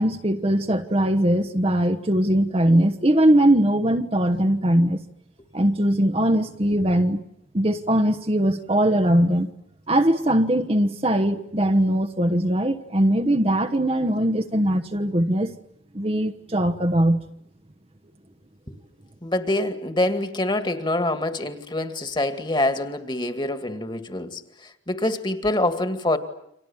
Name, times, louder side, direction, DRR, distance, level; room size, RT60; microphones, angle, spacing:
voice 1, 0.0-5.0 5.5-7.2 7.5-9.5 9.9-15.5 15.9-17.2, right 1 dB, 30° right, 1.1 m, -20 dB
voice 2, 19.2-26.2, left 1 dB, 25° left, 2.2 m, -25 dB
30.0 x 26.0 x 7.2 m
head